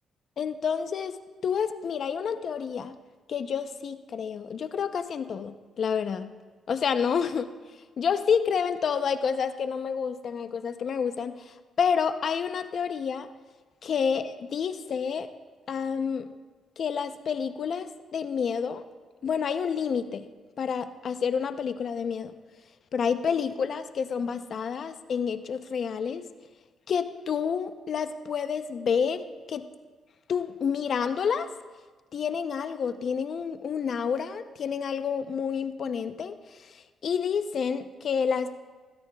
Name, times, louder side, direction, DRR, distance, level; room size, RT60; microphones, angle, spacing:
voice 1, 0.4-1.2 1.4-3.0 3.3-6.3 6.7-7.5 8.0-13.3 13.8-15.3 15.7-16.3 16.8-18.8 19.2-20.3 20.6-22.3 22.9-26.3 26.9-29.6 30.3-31.5 32.1-38.6, left 6 dB, 55° left, 10 dB, 0.6 m, -29 dB
19.5 x 16.5 x 2.3 m, 1.3 s
cardioid pair, 90°, 0 cm